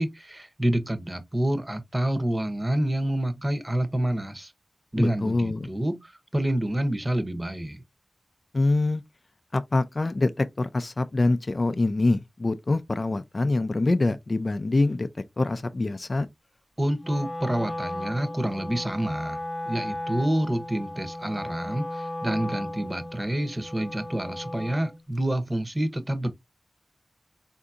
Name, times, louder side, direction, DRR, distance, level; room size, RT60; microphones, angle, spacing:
voice 1, 0.0-4.5 4.9-7.8 16.8-19.4 19.7-26.3, right 1 dB, 25° right, 0.9 m, -28 dB
voice 2, 5.0-5.7 8.5-9.0 9.5-15.1 15.4-16.3, left 2 dB, 50° left, 0.4 m, -25 dB
Wind instrument woodwind instrument, 17.0-25.0, left 1 dB, 20° left, 0.7 m, -35 dB
3.7 x 2.6 x 2.4 m
cardioid pair, 40°, 0 cm